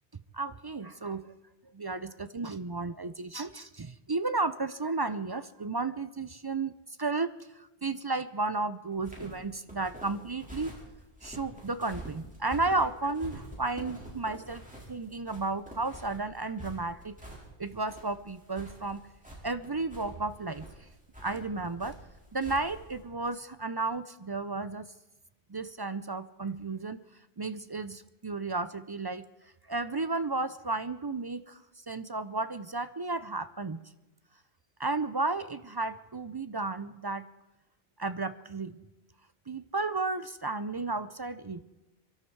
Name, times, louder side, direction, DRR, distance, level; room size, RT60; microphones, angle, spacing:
voice 1, 0.3-1.3 1.7-6.7 7.0-7.3 7.5-10.7 11.2-14.6 14.9-17.3 17.6-19.1 19.4-20.7 21.2-22.0 22.3-24.8 25.5-27.0 27.4-29.3 29.7-31.6 31.9-33.8 34.8-37.3 38.0-38.8 39.5-41.6, right 3 dB, 40° right, 13 dB, 0.3 m, -33 dB
sound 1, 8.9-23.0, right 1 dB, 5° right, 4.9 m, -47 dB
23.5 x 13.5 x 4.6 m, 1.0 s
omnidirectional pair, 1.1 m